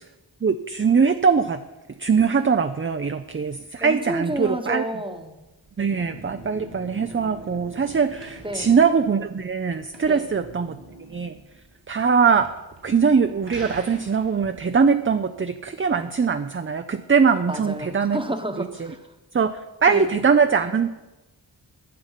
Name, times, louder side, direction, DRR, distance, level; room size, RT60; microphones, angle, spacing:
voice 1, 0.4-1.6 2.0-4.8 5.8-10.8 11.1-11.3 11.9-12.5 12.8-18.2 19.3-19.5 19.8-20.9, right 5 dB, 30° right, 9 dB, 0.5 m, -21 dB
voice 2, 3.8-5.3 8.4-8.8 10.1-10.3 17.5-19.0 19.9-20.1, right 1 dB, 10° right, 7 dB, 1.1 m, -30 dB
sound 1, 5.4-14.6, right 1 dB, 70° right, 2.6 m, -44 dB
11.0 x 6.8 x 5.8 m, 1.0 s
wide cardioid pair, 50°, 45 cm